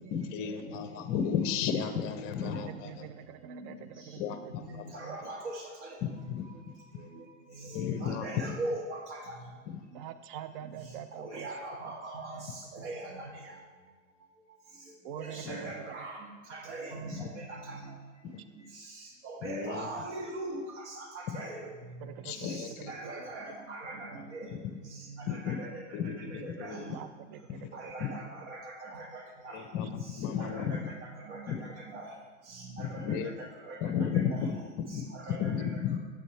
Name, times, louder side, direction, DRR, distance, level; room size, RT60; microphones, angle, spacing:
voice 1, 0.1-3.1 4.2-5.0 6.0-6.7 7.5-8.6 9.7-9.8 11.3-11.4 15.3-15.8 17.1-17.3 18.2-18.4 19.4-19.9 21.3-21.4 22.2-22.9 24.5-24.7 25.3-25.6 25.9-27.0 27.5-27.7 28.0-28.1 29.5-30.9 31.5-31.6 32.8-33.5 33.8-36.0, left 7 dB, 35° left, 9 dB, 0.7 m, -34 dB
voice 2, 2.4-4.5 5.0-5.2 9.9-11.5 11.8-11.9 15.0-16.1 16.5-16.9 22.0-23.1 23.4-23.5 26.9-28.1, right 10 dB, 45° right, 12 dB, 0.5 m, -45 dB
voice 3, 4.9-5.6 8.0-9.2 11.2-12.4 12.7-13.3 15.2-16.1 16.5-17.3 19.2-20.6 21.3-21.6 22.9-24.5 25.5-25.7 26.4-26.9 27.7-29.0 29.4-29.6 30.4-30.8 31.3-31.4 31.9-32.1 33.7-33.8 34.3-34.4 35.3-35.4, right 2 dB, 70° right, 0 dB, 1.8 m, -40 dB
8.9 x 7.9 x 3.3 m, 1.4 s
hypercardioid pair, 135°, 37 cm